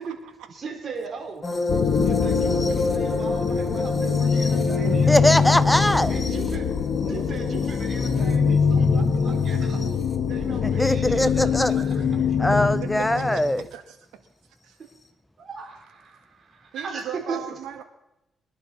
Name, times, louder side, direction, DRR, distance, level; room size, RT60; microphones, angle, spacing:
voice 1, 0.5-1.6 2.0-5.3 6.1-6.7 7.1-9.8 10.3-11.8 12.3-12.4 15.4-17.4, right 4 dB, 45° right, 3.8 m, -37 dB
sound 1, 1.4-10.1 11.4-11.7 13.4-13.5, left 1 dB, 30° left, 1.9 m, -31 dB
sound 2, 1.7-13.7, left 6 dB, 65° left, 1.4 m, -23 dB
voice 2, 4.8-6.1 10.6-11.8 12.4-13.6, left 1 dB, 5° left, 0.8 m, -21 dB
voice 3, 9.3-9.8 10.5-10.6 13.0-13.4 13.7-13.8 14.6-14.8 16.7-17.8, right 10 dB, 90° right, 2.1 m, -37 dB
23.0 x 11.5 x 4.2 m
cardioid pair, 90°, 0 cm